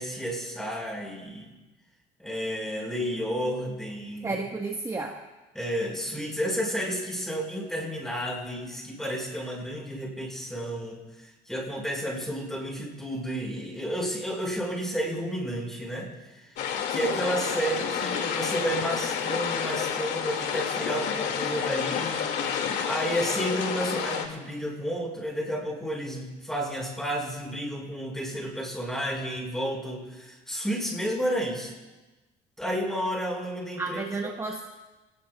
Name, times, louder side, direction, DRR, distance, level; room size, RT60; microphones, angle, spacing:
voice 1, 0.0-1.6 2.2-4.4 5.5-11.1 11.5-16.5 16.9-31.7 32.6-34.0, equal, ahead, -1 dB, 5.6 m, -31 dB
voice 2, 4.2-5.2 17.1-17.2 33.8-34.6, right 3 dB, 20° right, 1 dB, 1.6 m, -32 dB
sound 1, 16.6-24.3, left 7 dB, 80° left, 2.5 m, -29 dB
28.5 x 19.0 x 2.5 m, 1.1 s
cardioid pair, 110°, 17 cm